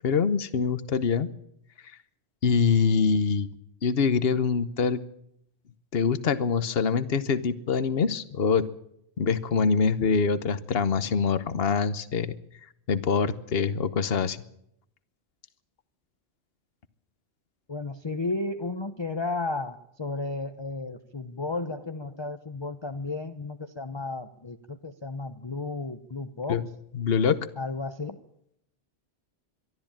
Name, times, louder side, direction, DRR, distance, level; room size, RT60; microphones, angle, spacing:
voice 1, 0.0-1.3 2.4-3.5 3.8-5.0 5.9-8.7 9.2-12.4 12.9-14.4 26.5-26.6 26.9-27.4, left 5 dB, 60° left, 14 dB, 1.2 m, -24 dB
voice 2, 17.7-26.6 27.6-28.2, left 3 dB, 25° left, 8 dB, 0.8 m, -33 dB
23.0 x 13.0 x 8.8 m, 0.75 s
omnidirectional pair, 1.1 m